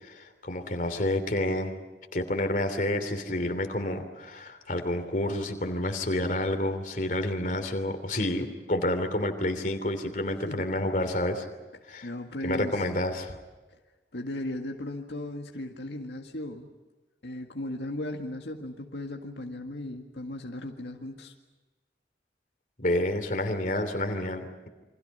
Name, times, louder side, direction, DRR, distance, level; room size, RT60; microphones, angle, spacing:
voice 1, 0.0-1.7 2.1-11.5 11.9-12.1 12.4-13.4 22.8-24.7, left 1 dB, 45° left, 7 dB, 3.0 m, -29 dB
voice 2, 12.0-12.9 14.1-16.7 17.2-21.3, left 1 dB, 80° left, 2 dB, 1.9 m, -36 dB
29.0 x 25.0 x 5.6 m, 1.2 s
head